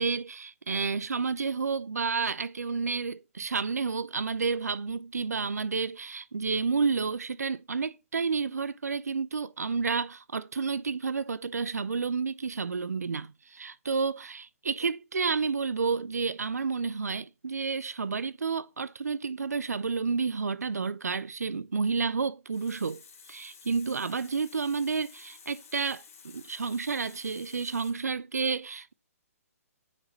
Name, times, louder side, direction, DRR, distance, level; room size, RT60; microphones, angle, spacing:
voice 1, 0.0-23.0 23.3-28.9, right 5 dB, 90° right, 0.4 m, -30 dB
Water tap faucet, 22.2-27.9, left 6 dB, 65° left, 1.8 m, -52 dB
8.8 x 4.1 x 3.1 m
hypercardioid pair, 140°, 8 cm